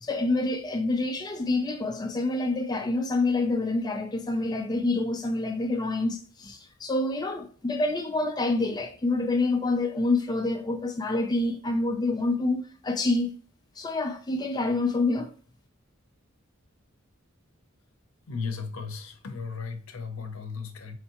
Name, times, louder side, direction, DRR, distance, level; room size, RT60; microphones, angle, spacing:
voice 1, 0.0-13.3 13.8-15.3, left 2 dB, 20° left, 0.4 m, -27 dB
voice 2, 18.3-21.0, left 5 dB, 75° left, 0.7 m, -35 dB
4.4 x 3.2 x 2.9 m
head